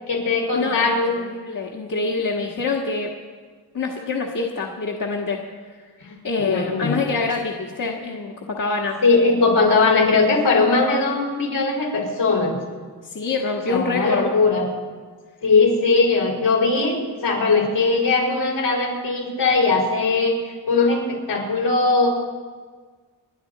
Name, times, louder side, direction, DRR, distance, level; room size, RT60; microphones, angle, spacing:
voice 1, 0.1-1.1 6.0-6.9 9.0-12.6 13.7-14.7 15.4-22.1, left 3 dB, 80° left, -1 dB, 4.9 m, -20 dB
voice 2, 1.3-3.1 3.7-5.4 6.2-9.0 13.1-14.4, left 4 dB, 50° left, 0 dB, 1.7 m, -25 dB
29.5 x 11.0 x 4.1 m, 1.5 s
wide cardioid pair, 90°, 41 cm